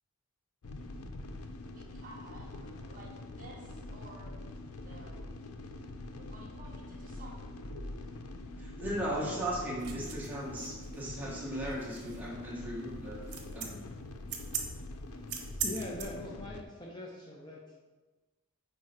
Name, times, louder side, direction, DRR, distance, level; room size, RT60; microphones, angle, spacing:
sound 1, 0.6-16.6, left 2 dB, 75° left, 0.5 m, -44 dB
voice 1, 1.7-4.3 4.7-5.2 5.9-7.3, right 2 dB, 40° right, -3 dB, 1.0 m, -53 dB
voice 2, 8.6-13.2 13.5-13.8, right 1 dB, 10° right, -7 dB, 1.4 m, -37 dB
sound 2, 9.8-16.0, right 7 dB, 80° right, 0.8 m, -40 dB
voice 3, 15.6-17.8, left 2 dB, 20° left, -3 dB, 0.5 m, -42 dB
4.7 x 4.6 x 4.4 m, 1.2 s
head